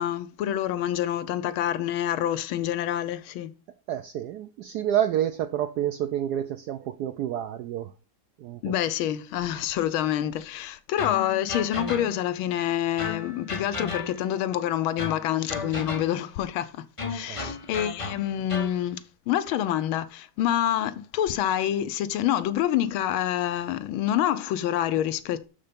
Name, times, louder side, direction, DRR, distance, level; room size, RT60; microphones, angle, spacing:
voice 1, 0.0-3.5 8.6-16.7 17.1-19.0 19.3-25.5, left 11 dB, 85° left, 1.5 m, -27 dB
voice 2, 3.9-7.9 8.4-8.7 17.3-17.5, right 11 dB, 80° right, 0.9 m, -29 dB
sound 1, 11.0-12.4 13.0-14.4 15.0-16.3 17.0-18.8, left 4 dB, 60° left, 0.3 m, -34 dB
6.6 x 5.6 x 5.1 m
omnidirectional pair, 2.2 m